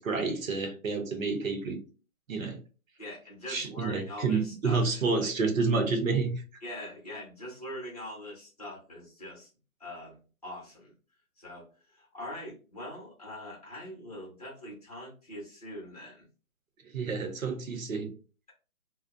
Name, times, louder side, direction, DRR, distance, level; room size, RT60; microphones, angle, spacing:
voice 1, 0.0-1.8 2.3-2.6 3.5-6.4 16.9-18.1, right 4 dB, 60° right, 0.8 m, -29 dB
voice 2, 3.0-5.3 6.6-9.5 9.8-10.2 10.4-10.9 11.4-11.7 11.9-16.3, left 1 dB, 25° left, 0.8 m, -43 dB
2.4 x 2.1 x 2.4 m
hypercardioid pair, 170°, 44 cm